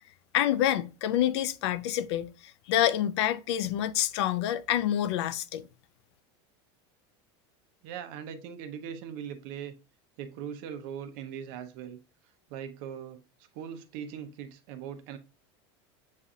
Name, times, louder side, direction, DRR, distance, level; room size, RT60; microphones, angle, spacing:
voice 1, 0.3-5.6, left 11 dB, 80° left, 0.4 m, -27 dB
voice 2, 7.8-9.7 10.2-12.0 12.5-13.2 13.5-15.2, right 8 dB, 50° right, 0.6 m, -40 dB
7.2 x 2.5 x 2.6 m
supercardioid pair, 165°, 14 cm